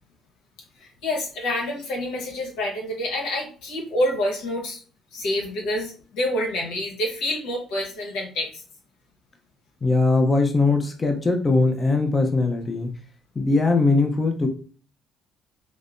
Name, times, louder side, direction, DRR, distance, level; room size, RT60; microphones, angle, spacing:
voice 1, 0.8-4.8 5.1-8.6, left 1 dB, 90° left, 0 dB, 1.1 m, -27 dB
voice 2, 9.8-13.0 13.4-14.5, left 3 dB, 25° left, 4 dB, 0.6 m, -20 dB
5.2 x 2.1 x 2.5 m, 0.40 s
cardioid pair, 105°, 0 cm